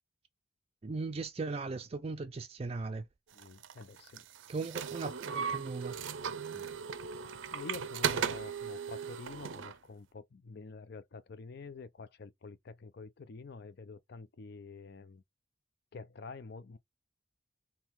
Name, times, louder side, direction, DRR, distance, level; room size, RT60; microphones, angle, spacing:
voice 1, 0.8-3.0 4.5-6.0, right 3 dB, 30° right, 0.4 m, -38 dB
voice 2, 3.3-4.3 6.5-6.7 7.2-15.2 15.9-16.8, left 4 dB, 55° left, 0.5 m, -48 dB
sound 1, 3.4-9.8, right 7 dB, 80° right, 0.5 m, -37 dB
3.7 x 2.9 x 4.4 m
head